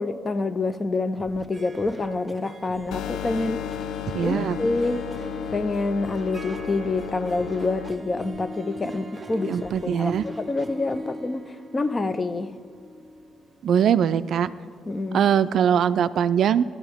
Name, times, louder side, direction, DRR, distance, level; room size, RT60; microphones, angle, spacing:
voice 1, 0.0-3.7 4.2-5.1 5.5-12.5 14.9-15.2, left 3 dB, 30° left, 13 dB, 0.5 m, -27 dB
Scratching (performance technique), 1.1-1.5 1.7-2.9 3.2-4.3 4.6-5.7 6.0-7.1 7.4-8.4 8.7-9.3 9.5-9.8 10.1-10.9, right 1 dB, ahead, 1.4 m, -46 dB
Harp, 1.3-15.3, left 1 dB, 20° right, 1.0 m, -40 dB
sound 1, 2.9-7.9, left 12 dB, 80° left, 0.3 m, -34 dB
voice 2, 4.1-4.6 9.5-10.3 13.6-14.5 15.1-16.6, right 8 dB, 65° right, 14 dB, 0.3 m, -21 dB
15.5 x 12.0 x 3.5 m, 2.2 s
cardioid pair, 90°, 0 cm